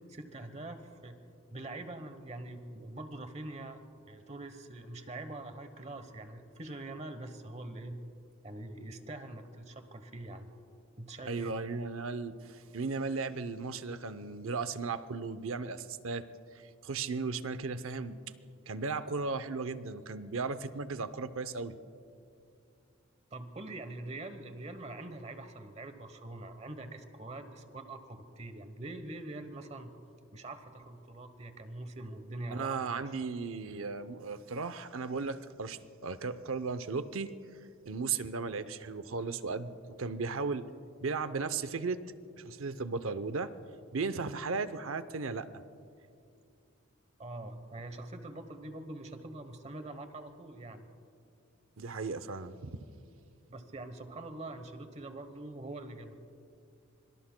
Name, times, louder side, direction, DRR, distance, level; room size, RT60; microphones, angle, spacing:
voice 1, 0.1-1.2 1.5-3.8 4.1-8.0 8.4-10.5 11.0-11.5 23.3-29.9 30.3-33.1 47.2-50.9 53.5-56.1, right 2 dB, 30° right, 9 dB, 1.0 m, -44 dB
voice 2, 11.3-16.3 16.5-18.2 18.7-21.8 32.5-37.3 37.8-40.7 41.0-42.0 42.4-43.5 43.9-45.5 51.8-52.8, right 4 dB, 80° right, 12 dB, 0.7 m, -36 dB
26.0 x 24.5 x 2.2 m, 2.5 s
head